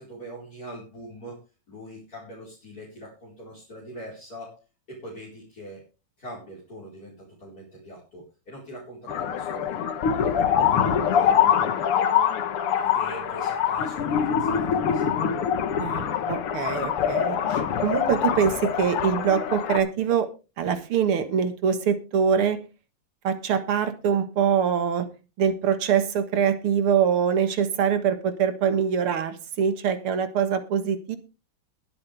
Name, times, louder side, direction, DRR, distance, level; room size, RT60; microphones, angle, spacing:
voice 1, 0.0-1.4 1.7-4.6 4.9-5.9 6.2-9.8 10.1-11.9 12.8-15.2, equal, 40° left, -5 dB, 4.9 m, -42 dB
sound 1, 9.1-19.8, left 8 dB, 85° left, 2.1 m, -24 dB
voice 2, 15.8-20.3 20.6-22.6 23.2-25.1 25.4-31.2, right 7 dB, 80° right, 9 dB, 2.4 m, -24 dB
21.5 x 7.9 x 3.4 m, 0.30 s
omnidirectional pair, 2.4 m